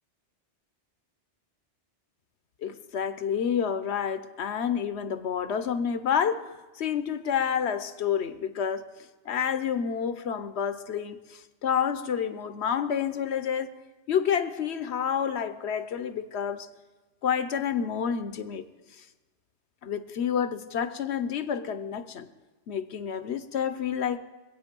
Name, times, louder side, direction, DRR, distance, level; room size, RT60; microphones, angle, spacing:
voice 1, 2.6-13.7 14.1-16.7 17.2-18.6 19.0-19.1 19.8-22.3 22.7-24.2, left 8 dB, 70° left, 12 dB, 1.0 m, -29 dB
23.5 x 8.6 x 5.2 m, 1.2 s
omnidirectional pair, 1.2 m